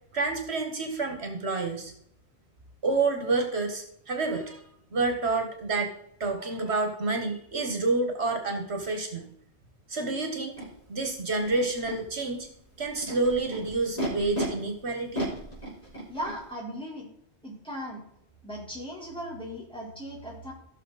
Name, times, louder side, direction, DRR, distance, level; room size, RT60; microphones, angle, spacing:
voice 1, 0.1-1.9 2.8-4.6 4.9-5.9 6.2-9.3 9.9-10.6 10.9-12.5 12.8-15.2, right 3 dB, 70° right, 4 dB, 1.7 m, -28 dB
Animal, 10.6-10.7 11.4-12.0 12.8-14.5 15.1-16.4, equal, 35° left, 4.5 m, -34 dB
voice 2, 16.1-17.1 17.4-18.0 18.4-20.5, equal, 5° left, -5 dB, 4.1 m, -37 dB
15.5 x 6.5 x 4.1 m, 0.73 s
omnidirectional pair, 1.1 m